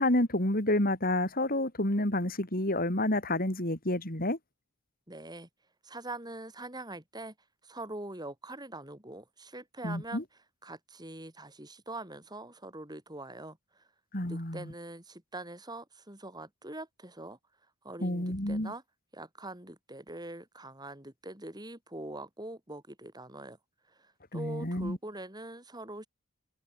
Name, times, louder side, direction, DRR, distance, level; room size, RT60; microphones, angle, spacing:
voice 1, 0.0-4.4 9.8-10.2 14.1-14.7 18.0-18.7 24.3-25.0, left 1 dB, 40° left, 4.3 m, -29 dB
voice 2, 5.1-5.5 5.8-7.3 7.6-10.2 10.6-13.9 14.2-17.4 17.8-18.8 19.1-23.6 23.9-26.1, right 2 dB, 20° right, 6.3 m, -43 dB
head